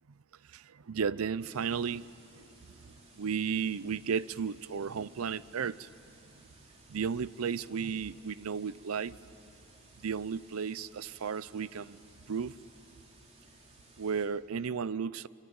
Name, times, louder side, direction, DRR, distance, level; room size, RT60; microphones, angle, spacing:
voice 1, 0.5-2.1 2.3-2.5 2.8-5.9 6.9-9.1 10.0-12.0 12.3-12.5 14.0-15.3, right 6 dB, 90° right, 19 dB, 0.5 m, -34 dB
sound 1, 1.4-14.3, right 2 dB, 30° right, 3.3 m, -59 dB
25.5 x 25.0 x 8.8 m, 2.7 s
head